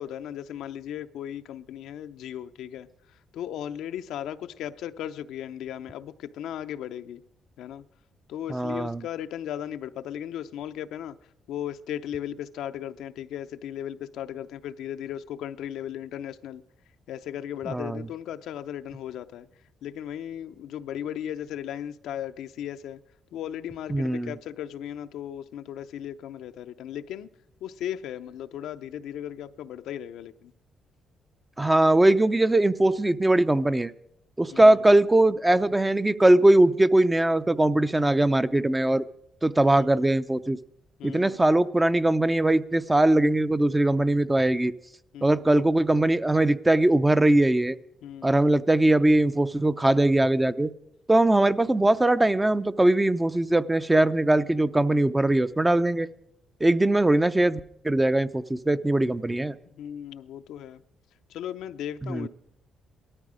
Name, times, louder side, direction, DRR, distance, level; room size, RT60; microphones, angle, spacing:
voice 1, 0.0-7.2 7.6-7.8 8.3-11.2 11.5-16.6 17.1-19.5 19.8-23.0 23.3-27.3 27.6-30.5 34.5-34.8 39.7-39.9 41.0-41.4 45.1-45.4 48.0-48.4 59.8-60.8 61.3-62.3, left 10 dB, 85° left, 0.6 m, -36 dB
voice 2, 8.5-9.0 17.7-18.1 23.9-24.3 31.6-33.9 34.4-39.0 39.4-40.6 41.0-44.7 45.2-47.8 48.2-50.7 51.1-56.1 56.6-59.5 62.0-62.3, right 1 dB, 15° right, 0.5 m, -21 dB
17.5 x 13.5 x 5.0 m
cardioid pair, 90°, 0 cm